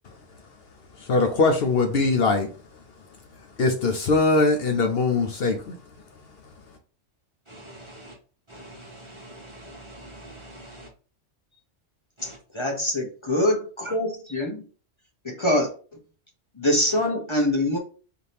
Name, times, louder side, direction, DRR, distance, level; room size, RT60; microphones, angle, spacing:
voice 1, 1.1-2.5 3.6-5.7, left 3 dB, 60° left, 0.9 m, -21 dB
voice 2, 7.5-8.1 8.5-10.9, right 1 dB, 25° right, 1.0 m, -44 dB
voice 3, 12.5-14.6 15.2-15.7 16.6-17.8, left 1 dB, 25° left, 0.8 m, -24 dB
4.2 x 2.8 x 3.4 m
omnidirectional pair, 1.2 m